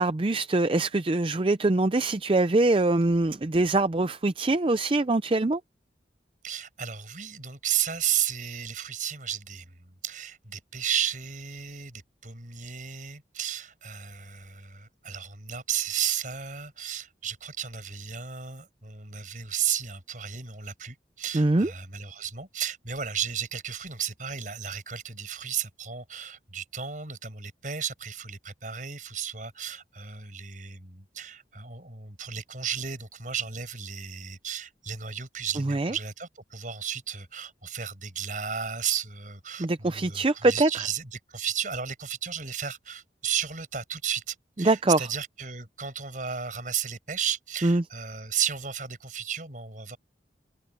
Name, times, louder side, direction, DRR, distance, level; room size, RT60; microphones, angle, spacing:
voice 1, 0.0-5.6 21.3-21.7 35.7-35.9 39.6-40.8 44.6-45.1 47.6-47.8, right 2 dB, 30° right, 0.5 m, -23 dB
voice 2, 6.4-50.0, right 8 dB, 45° right, 6.1 m, -33 dB
head